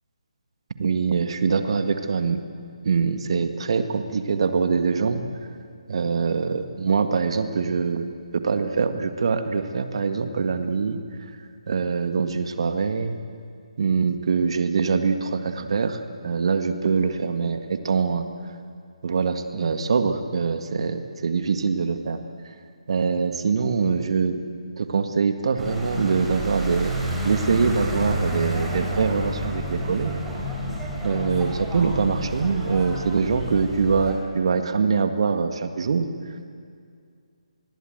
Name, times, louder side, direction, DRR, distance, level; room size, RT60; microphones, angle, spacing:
voice 1, 0.8-2.4 2.8-5.2 5.9-8.1 8.3-11.3 11.7-13.2 13.8-18.2 19.0-22.6 22.9-24.4 24.8-26.9 27.2-30.1 31.0-36.1, right 5 dB, 55° right, 8 dB, 1.9 m, -24 dB
sound 1, 25.6-34.1, equal, 5° right, 4.6 m, -30 dB
27.0 x 21.0 x 8.0 m, 2.3 s
figure-of-eight pair, 145°, 4 cm